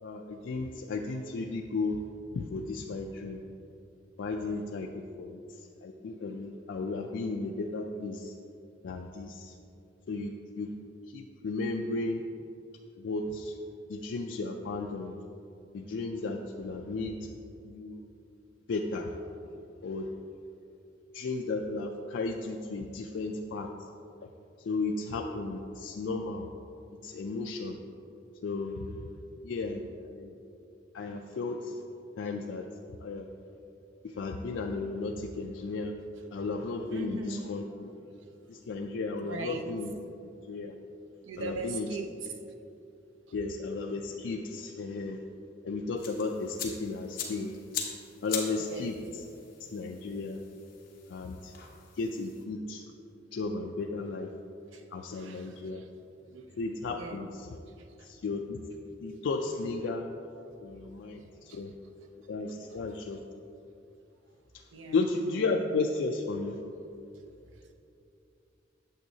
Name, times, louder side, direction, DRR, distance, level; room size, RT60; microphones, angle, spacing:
voice 1, 0.0-2.0 2.3-3.4 4.2-5.4 5.8-8.3 8.8-9.5 10.1-10.7 11.1-12.2 13.0-13.5 13.9-15.1 15.7-17.2 17.6-18.0 18.7-19.1 19.8-20.1 21.1-23.7 24.7-26.5 27.0-27.8 28.4-28.9 29.4-29.8 30.1-30.3 30.9-31.7 32.2-32.7 33.0-33.3 34.0-35.9 36.3-37.9 38.5-39.9 40.5-40.7 41.4-41.9 43.3-45.2 45.6-47.5 48.2-48.9 49.7-50.4 51.1-51.5 52.0-52.8 53.3-54.3 54.9-55.8 56.6-57.3 58.0-58.6 59.0-60.0 60.6-61.2 61.5-61.7 62.3-63.2 64.9-66.6, left 3 dB, 70° left, 2 dB, 0.4 m, -34 dB
voice 2, 36.9-37.5 38.1-38.3 38.5-38.6 39.2-39.7 41.2-42.4 48.6-48.9 54.7-55.9 56.3-56.6 56.9-57.3 57.7-58.1 60.4-61.1 61.5-61.7 62.0-62.1 62.4-63.0 64.7-65.1, right 2 dB, 85° right, 5 dB, 0.6 m, -41 dB
sound 1, 46.0-52.4, left 6 dB, 50° left, 1.0 m, -41 dB
9.0 x 7.0 x 2.7 m, 2.7 s
head